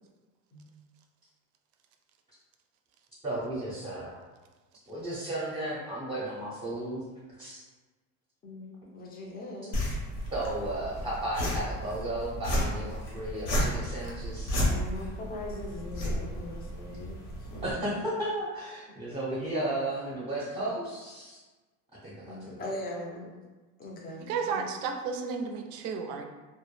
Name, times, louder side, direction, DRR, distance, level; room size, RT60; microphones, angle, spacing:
voice 1, 3.2-4.2 4.9-7.0 7.4-7.5 10.3-14.6 17.6-21.4 22.0-22.6, right 1 dB, 15° right, -7 dB, 0.6 m, -34 dB
voice 2, 8.4-9.8 14.5-17.8 22.3-23.3 23.8-24.7, left 1 dB, 25° left, -1 dB, 0.5 m, -41 dB
sound 1, 9.7-17.7, equal, 70° left, 0.9 m, -32 dB
voice 3, 24.2-26.2, right 5 dB, 75° right, 4 dB, 0.5 m, -33 dB
2.1 x 2.0 x 3.1 m, 1.2 s
supercardioid pair, 115°, 36 cm